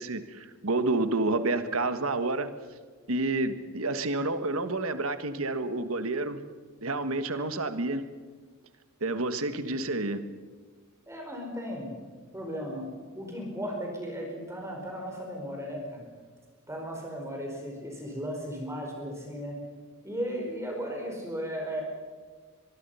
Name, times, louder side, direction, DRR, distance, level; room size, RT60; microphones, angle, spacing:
voice 1, 0.0-2.5 3.1-6.4 6.8-8.1 9.0-10.2, right 2 dB, 75° right, 10 dB, 1.5 m, -29 dB
voice 2, 11.1-11.9 12.3-12.9 13.2-16.0 16.7-19.6 20.0-21.8, equal, 15° right, 0 dB, 4.8 m, -35 dB
23.5 x 23.5 x 5.6 m, 1.5 s
head